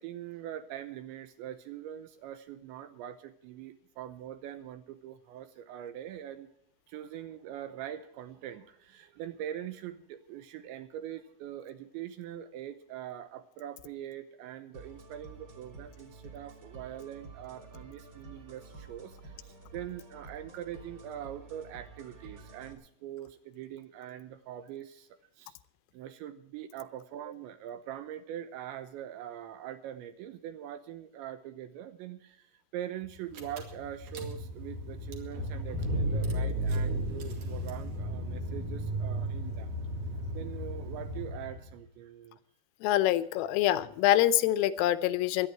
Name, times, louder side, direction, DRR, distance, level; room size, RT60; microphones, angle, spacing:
voice 1, 0.0-6.5 6.9-25.1 25.4-25.6 25.9-39.7 40.3-42.4, right 11 dB, 80° right, 10 dB, 2.8 m, -43 dB
sound 1, 14.7-22.7, right 3 dB, 30° right, 3.0 m, -50 dB
Car / Engine, 33.0-33.1 33.3-41.7, right 1 dB, 50° right, 3.4 m, -34 dB
voice 2, 42.8-45.5, left 13 dB, 85° left, 13 dB, 3.3 m, -25 dB
23.5 x 9.9 x 4.5 m, 0.69 s
omnidirectional pair, 5.8 m